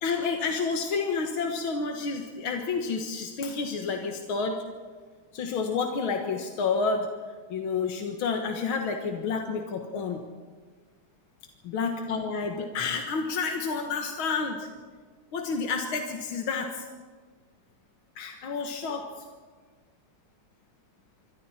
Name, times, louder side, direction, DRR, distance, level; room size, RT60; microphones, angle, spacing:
voice 1, 0.0-4.6 5.3-7.1 7.5-10.2 11.7-14.7 15.3-16.9 18.2-19.1, left 4 dB, 80° left, 3 dB, 2.3 m, -29 dB
26.5 x 23.5 x 4.4 m, 1.5 s
omnidirectional pair, 2.2 m